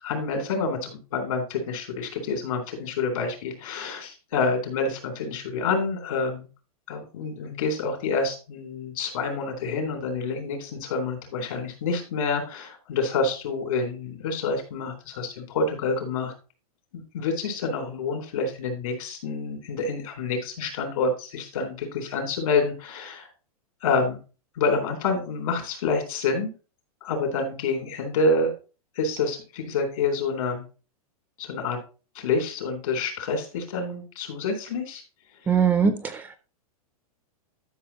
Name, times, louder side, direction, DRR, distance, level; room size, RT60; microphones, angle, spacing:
voice 1, 0.0-6.5 6.9-16.3 16.9-23.3 23.8-24.2 24.6-26.5 27.0-28.5 28.9-30.6 31.4-31.8 32.1-35.0, left 4 dB, 65° left, 4 dB, 3.8 m, -28 dB
voice 2, 35.5-36.4, right 6 dB, 10° right, 10 dB, 0.4 m, -22 dB
12.0 x 6.2 x 2.9 m, 0.34 s
hypercardioid pair, 155°, 19 cm